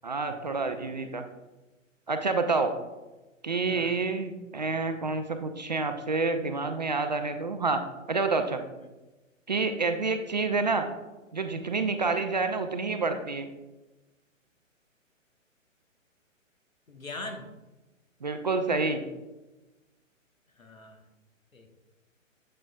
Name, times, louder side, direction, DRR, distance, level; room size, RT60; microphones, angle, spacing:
voice 1, 0.0-1.2 2.1-2.7 3.4-7.8 8.1-8.6 9.5-10.9 11.3-13.5 18.2-19.0, right 3 dB, 35° right, 7 dB, 0.4 m, -28 dB
voice 2, 16.9-17.5 20.6-21.0 21.5-21.8, left 2 dB, 85° left, 4 dB, 1.2 m, -42 dB
7.8 x 7.7 x 2.2 m, 1.1 s
figure-of-eight pair, 125°, 39 cm